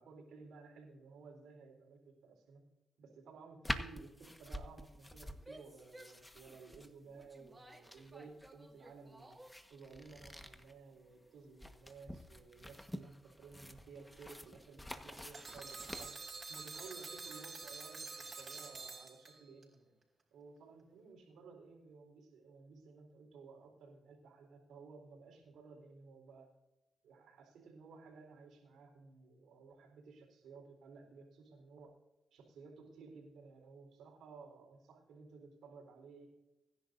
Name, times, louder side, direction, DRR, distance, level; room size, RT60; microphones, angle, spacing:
voice 1, 0.0-2.6 3.0-9.4 9.7-16.1 16.5-19.9 20.3-26.5 27.0-31.9 32.3-36.3, right 4 dB, 90° right, 2 dB, 4.1 m, -56 dB
sound 1, 3.6-16.9, left 1 dB, 10° left, 1.4 m, -48 dB
Female speech woman speaking / Yell, 5.3-9.7, right 1 dB, 15° right, 2.2 m, -58 dB
sound 2, 15.3-19.6, right 4 dB, 45° right, 4.0 m, -47 dB
24.0 x 11.0 x 2.7 m, 1.0 s
cardioid pair, 60°, 0 cm